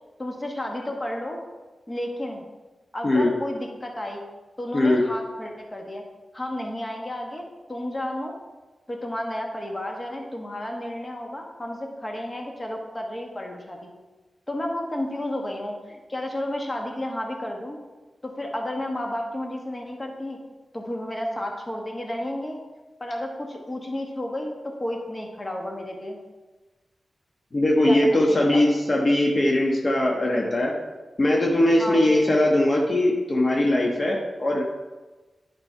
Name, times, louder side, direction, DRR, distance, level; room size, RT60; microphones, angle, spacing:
voice 1, 0.2-1.4 1.9-2.4 2.9-4.2 4.6-6.0 6.3-7.4 7.7-8.3 8.9-13.9 14.5-17.8 18.2-20.4 20.7-22.6 23.0-26.2 27.9-28.6 31.8-32.2, left 1 dB, 25° left, 2 dB, 1.4 m, -32 dB
voice 2, 4.7-5.0 27.5-30.7 31.2-34.6, left 1 dB, 40° left, -1 dB, 1.2 m, -20 dB
9.9 x 5.3 x 4.5 m, 1.2 s
cardioid pair, 75°, 0 cm